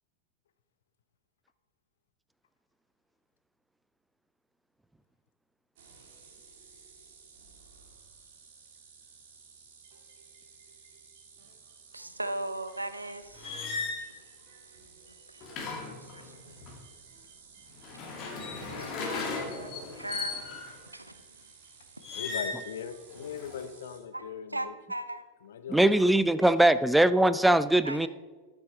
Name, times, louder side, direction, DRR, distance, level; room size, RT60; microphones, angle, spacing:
sound 1, 5.8-24.0, right 5 dB, 55° right, 1.8 m, -55 dB
voice 1, 11.9-14.0 15.3-15.4 15.8-16.6 18.7-21.2 22.0-22.2 24.1-24.3 24.5-25.2 26.4-26.5 27.8-28.1, right 1 dB, 85° right, 11 dB, 0.6 m, -39 dB
sound 2, 13.3-14.0 15.4-16.7 17.7-20.8 22.0-22.7 23.1-23.6, left 4 dB, 35° left, 2.2 m, -36 dB
voice 2, 19.9-20.3 22.1-24.7 25.4-26.1, left 7 dB, 60° left, 10 dB, 0.7 m, -40 dB
voice 3, 25.7-28.1, right 1 dB, 5° right, 14 dB, 0.4 m, -21 dB
13.0 x 7.3 x 3.2 m, 1.4 s
figure-of-eight pair, 90°, 0 cm